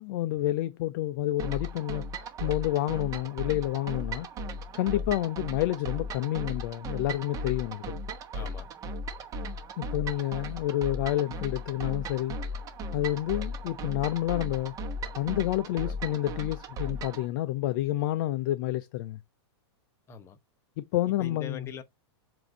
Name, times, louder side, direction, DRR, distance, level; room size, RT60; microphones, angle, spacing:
voice 1, 0.0-2.0 2.4-4.3 4.7-8.0 9.8-12.4 12.9-14.7 15.2-19.2 20.8-21.6, left 14 dB, 45° left, 0.5 m, -29 dB
sound 1, 1.4-17.3, equal, 25° right, 1.0 m, -36 dB
voice 2, 8.3-8.7 20.1-20.4 21.2-21.8, left 6 dB, 20° left, 0.8 m, -41 dB
7.5 x 2.6 x 5.3 m
supercardioid pair, 150°, 15 cm